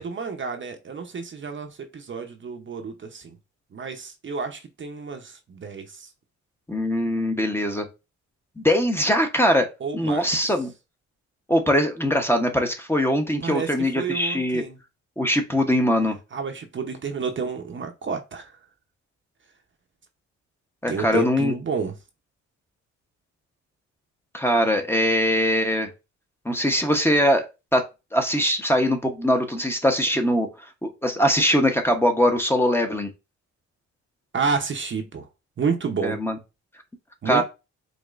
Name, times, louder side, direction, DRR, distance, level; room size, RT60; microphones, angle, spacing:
voice 1, 0.0-3.4 3.7-6.1 9.8-10.5 13.4-14.8 16.3-18.5 20.9-22.0 34.3-35.3 35.6-36.2 37.2-37.4, right 5 dB, 40° right, 0.8 m, -30 dB
voice 2, 6.7-7.9 8.6-9.7 9.9-10.7 11.5-14.6 15.2-16.2 20.8-21.5 24.3-25.9 26.4-27.5 27.7-27.9 28.1-30.5 30.8-33.1 36.0-36.4 37.2-37.4, equal, 10° left, 0.9 m, -22 dB
5.1 x 3.0 x 2.5 m
cardioid pair, 90°, 30 cm